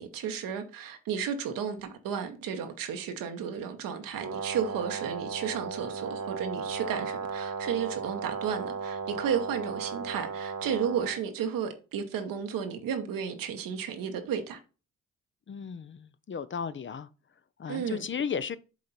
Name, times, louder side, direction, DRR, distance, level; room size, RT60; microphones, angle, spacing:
voice 1, 0.0-14.6 17.7-18.0, right 7 dB, 75° right, 1.2 m, -33 dB
Brass instrument, 4.2-11.2, right 5 dB, 55° right, 1.2 m, -36 dB
voice 2, 15.5-17.1 17.6-18.6, left 6 dB, 35° left, 0.6 m, -35 dB
7.5 x 3.8 x 4.2 m
supercardioid pair, 50°, 33 cm